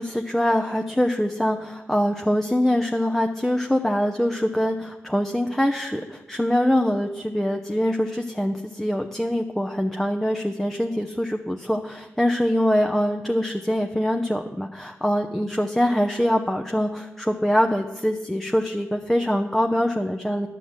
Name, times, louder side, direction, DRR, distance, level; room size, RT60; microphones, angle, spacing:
voice 1, 0.0-20.5, equal, 5° left, 4 dB, 0.8 m, -24 dB
10.0 x 6.1 x 7.4 m, 1.1 s
supercardioid pair, 40°, 6 cm